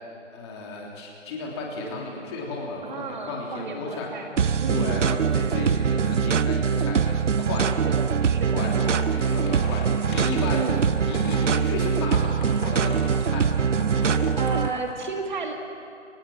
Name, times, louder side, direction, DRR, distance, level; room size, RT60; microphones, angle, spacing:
voice 1, 0.3-4.1 4.7-7.9 8.2-8.7 9.0-10.6 11.0-12.9 13.2-14.4, left 3 dB, 20° left, -2 dB, 3.3 m, -34 dB
voice 2, 2.8-4.3 4.6-5.1 7.6-9.0 10.5-10.9 14.3-15.5, right 4 dB, 35° right, 3 dB, 2.2 m, -33 dB
sound 1, 4.4-14.7, right 6 dB, 70° right, 0.7 m, -23 dB
sound 2, 8.8-14.9, left 3 dB, 40° left, 2.9 m, -39 dB
25.5 x 18.5 x 7.5 m, 2.6 s
figure-of-eight pair, 150°, 38 cm